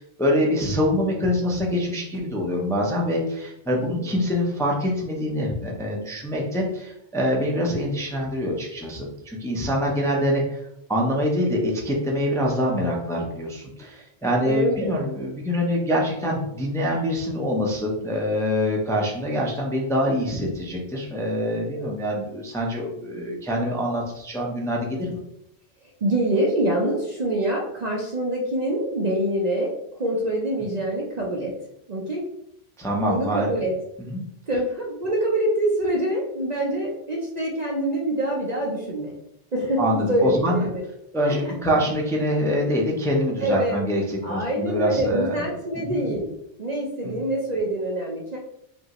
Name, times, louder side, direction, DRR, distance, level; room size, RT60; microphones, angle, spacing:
voice 1, 0.0-10.6 10.9-25.2 32.8-33.5 34.1-34.2 39.8-40.7 41.1-45.5 45.7-46.1 47.0-47.2, equal, 5° left, -2 dB, 0.6 m, -25 dB
voice 2, 3.8-4.1 14.4-15.0 21.7-21.9 23.2-23.3 26.0-31.5 31.9-32.3 33.0-33.7 34.5-39.1 39.5-40.8 41.3-41.8 43.4-43.8 44.2-46.3 46.6-48.4, right 1 dB, 45° right, -2 dB, 0.7 m, -25 dB
5.1 x 2.7 x 3.0 m, 0.77 s
omnidirectional pair, 1.2 m